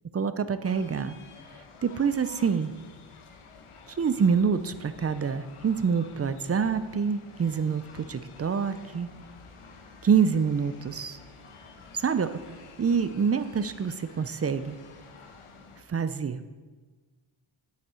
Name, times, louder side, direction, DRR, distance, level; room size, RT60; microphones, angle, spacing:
voice 1, 0.1-1.1 1.8-2.7 3.9-9.1 10.0-11.2 11.9-12.3 12.8-14.8 15.9-16.5, right 6 dB, 35° right, 12 dB, 0.4 m, -26 dB
sound 1, 0.6-15.8, left 4 dB, 85° left, 1.1 m, -50 dB
9.3 x 8.2 x 4.3 m, 1.3 s
wide cardioid pair, 150°, 49 cm